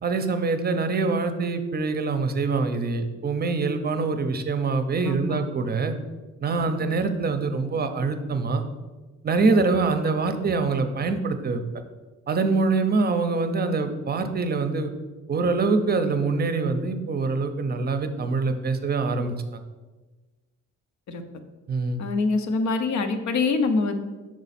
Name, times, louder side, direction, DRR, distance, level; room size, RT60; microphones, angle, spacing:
voice 1, 0.0-5.9 6.4-8.6 9.2-11.6 12.3-14.9 15.3-19.3 21.7-22.0, right 4 dB, 30° right, 8 dB, 0.6 m, -24 dB
voice 2, 5.0-5.4 21.1-21.2 22.0-23.9, left 3 dB, 65° left, 7 dB, 0.7 m, -24 dB
6.2 x 4.0 x 4.1 m, 1.3 s
cardioid pair, 90°, 30 cm